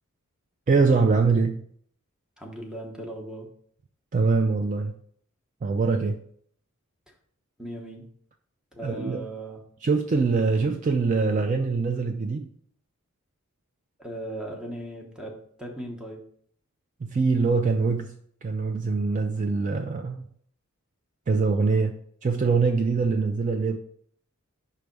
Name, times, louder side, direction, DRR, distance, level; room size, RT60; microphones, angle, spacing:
voice 1, 0.7-1.6 4.1-4.9 5.6-6.2 8.8-9.3 9.8-12.5 17.0-18.2 18.4-20.3 21.3-23.8, right 4 dB, 35° right, 0.3 m, -23 dB
voice 2, 2.4-3.5 7.6-8.0 8.7-9.6 14.0-16.2, right 1 dB, 5° right, 0.9 m, -38 dB
5.4 x 3.4 x 5.2 m
head